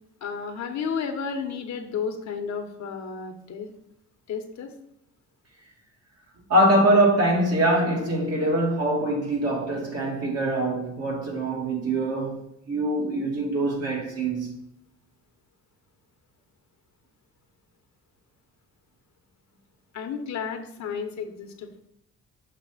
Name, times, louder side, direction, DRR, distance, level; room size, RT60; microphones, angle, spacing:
voice 1, 0.2-3.7 4.3-4.7 19.9-21.8, left 6 dB, 65° left, 1.1 m, -32 dB
voice 2, 6.5-12.4 12.7-14.6, right 1 dB, 55° right, 2.4 m, -23 dB
6.7 x 2.9 x 5.6 m
cardioid pair, 90°, 30 cm